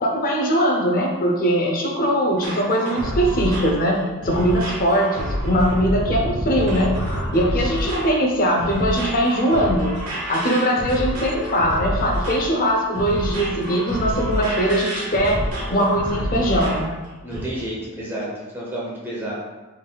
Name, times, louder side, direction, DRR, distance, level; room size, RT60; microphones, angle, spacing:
voice 1, 0.0-7.0 7.3-9.9 10.3-15.4 15.7-16.9, equal, 40° left, 0 dB, 0.6 m, -21 dB
sound 1, 2.4-16.9 17.3-17.4, equal, 85° right, 1.1 m, -28 dB
voice 2, 17.2-18.3 18.5-19.3, right 1 dB, 10° right, -6 dB, 0.8 m, -31 dB
3.9 x 3.5 x 2.3 m, 1.2 s
head